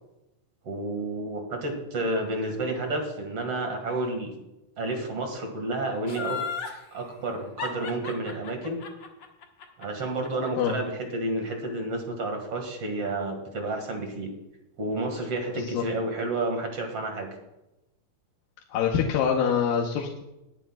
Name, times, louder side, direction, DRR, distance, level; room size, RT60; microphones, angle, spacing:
voice 1, 0.6-4.3 4.8-6.4 6.9-8.8 9.8-14.3 14.8-17.3, right 2 dB, 45° right, 3 dB, 2.5 m, -30 dB
Laughter, 6.1-6.8 7.6-10.7 11.0-11.1, left 6 dB, 55° left, 1.3 m, -34 dB
voice 2, 15.5-15.8 18.7-20.2, left 7 dB, 75° left, 0 dB, 2.6 m, -25 dB
21.5 x 10.0 x 2.3 m, 0.95 s
omnidirectional pair, 4.2 m